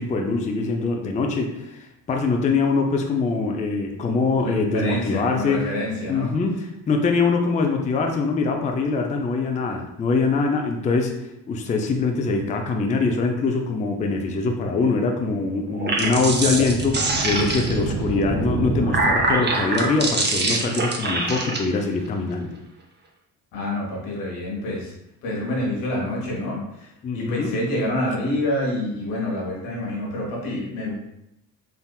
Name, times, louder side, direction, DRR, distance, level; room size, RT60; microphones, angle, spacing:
voice 1, 0.0-5.7 6.1-11.1 11.5-22.5 27.0-27.5, left 4 dB, 15° left, 3 dB, 0.4 m, -23 dB
voice 2, 4.4-6.3 23.5-24.9 25.2-30.9, left 1 dB, 80° left, -3 dB, 1.1 m, -27 dB
sound 1, 15.7-17.9 18.6-21.6, right 2 dB, 25° right, 0.6 m, -24 dB
sound 2, 15.9-19.8, right 3 dB, 60° right, 0.7 m, -28 dB
3.4 x 2.6 x 2.3 m, 0.83 s
hypercardioid pair, 50°, 47 cm